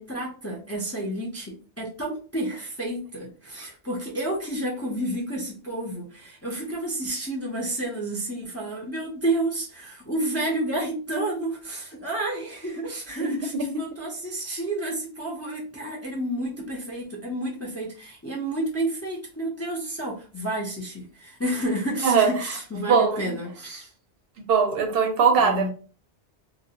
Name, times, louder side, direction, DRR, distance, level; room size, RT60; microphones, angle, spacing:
voice 1, 0.0-23.9 25.4-25.7, right 1 dB, 20° left, 0.5 m, -30 dB
voice 2, 13.2-13.8 22.0-23.4 24.5-25.7, right 5 dB, 65° right, 0.7 m, -22 dB
2.5 x 2.2 x 2.8 m
omnidirectional pair, 1.1 m